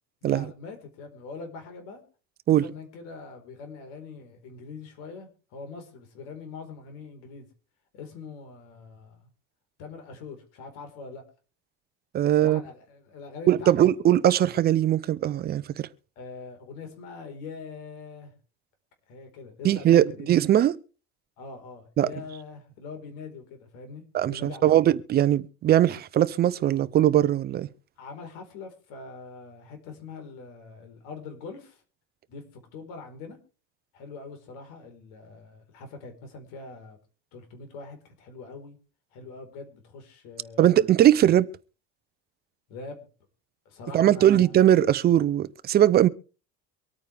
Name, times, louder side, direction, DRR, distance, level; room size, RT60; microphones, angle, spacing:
voice 1, 0.2-2.0 2.6-7.5 7.9-9.3 9.8-11.2 12.2-13.9 16.2-18.3 19.1-20.3 21.4-24.8 28.0-31.8 32.3-32.4 32.7-33.4 33.9-37.0 37.3-38.8 39.1-40.7 42.7-43.1 43.6-44.6, left 4 dB, 90° left, 4.5 m, -43 dB
voice 2, 12.1-12.6 13.5-15.9 19.6-20.7 22.0-22.1 24.1-27.7 40.6-41.5 43.9-46.1, right 11 dB, 30° right, 0.6 m, -20 dB
24.5 x 9.1 x 3.5 m
cardioid pair, 160°, 31 cm